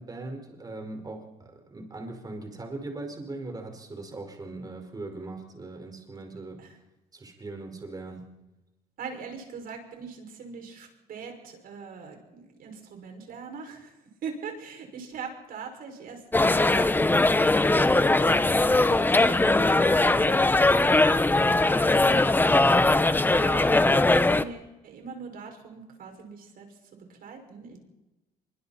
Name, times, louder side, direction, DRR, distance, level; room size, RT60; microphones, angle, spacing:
voice 1, 0.0-6.6 7.1-8.3, right 2 dB, 20° right, 4 dB, 5.2 m, -39 dB
voice 2, 9.0-14.0 14.2-21.2 21.5-27.8, right 5 dB, 60° right, 4 dB, 6.2 m, -42 dB
sound 1, 16.3-24.4, left 2 dB, 10° left, 0.9 m, -20 dB
25.5 x 24.0 x 4.4 m, 1.0 s
cardioid pair, 110°, 17 cm